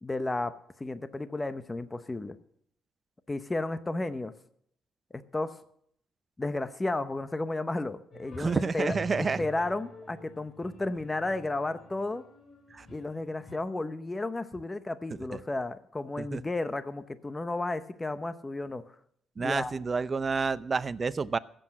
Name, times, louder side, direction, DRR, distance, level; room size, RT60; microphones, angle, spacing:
voice 1, 0.0-2.4 3.3-4.3 5.1-5.6 6.4-12.2 12.9-18.9 19.4-19.7, left 2 dB, 20° left, 12 dB, 0.8 m, -33 dB
sound 1, 8.1-13.6, equal, 45° left, 4.0 m, -47 dB
voice 2, 8.4-9.4 12.7-12.9 16.2-16.4 19.4-21.4, right 4 dB, 35° right, 15 dB, 0.6 m, -29 dB
15.0 x 7.9 x 7.5 m, 0.70 s
cardioid pair, 85°, 0 cm